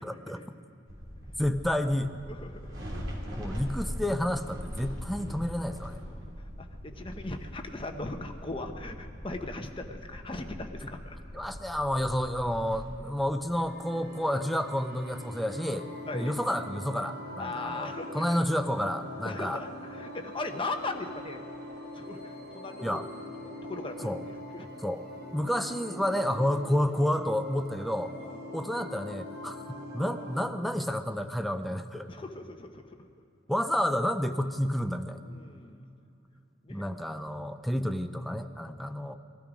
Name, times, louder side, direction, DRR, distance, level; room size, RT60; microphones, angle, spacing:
voice 1, 0.0-0.4 1.4-2.1 3.4-6.0 11.3-15.9 16.1-19.6 22.8-23.0 24.0-24.2 24.8-25.0 25.3-28.1 28.5-32.1 33.5-35.2 36.7-39.2, equal, ahead, 7 dB, 0.5 m, -30 dB
sound 1, 0.9-12.8, equal, 70° right, 3.2 m, -41 dB
voice 2, 2.3-2.7 6.1-6.2 6.6-11.2 16.1-16.3 17.4-18.5 19.2-21.4 21.9-23.0 23.4-24.7 28.2-28.4 32.1-33.1 35.2-35.8 36.6-36.8 38.8-38.9, left 2 dB, 25° left, 5 dB, 1.0 m, -39 dB
sound 2, 13.5-30.4, left 1 dB, 55° right, 3.6 m, -43 dB
20.5 x 13.0 x 5.1 m, 2.7 s
head